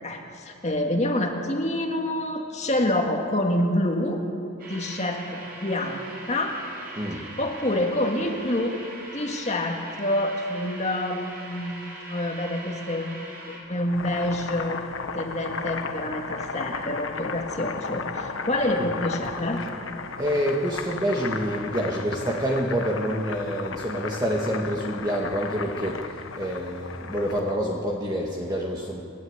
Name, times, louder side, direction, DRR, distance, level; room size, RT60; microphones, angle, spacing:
voice 1, 0.0-4.2 4.7-6.0 6.3-6.6 7.1-8.7 9.1-13.2 13.5-14.8 15.2-19.6, left 1 dB, 30° left, 2 dB, 2.0 m, -27 dB
sound 1, 4.6-13.6, right 1 dB, 45° right, 6.2 m, -41 dB
Boiling, 13.7-27.5, left 4 dB, 70° left, 1.3 m, -35 dB
voice 2, 20.2-26.0 26.3-29.0, equal, 20° right, -2 dB, 1.6 m, -27 dB
29.0 x 11.5 x 8.0 m, 2.7 s
head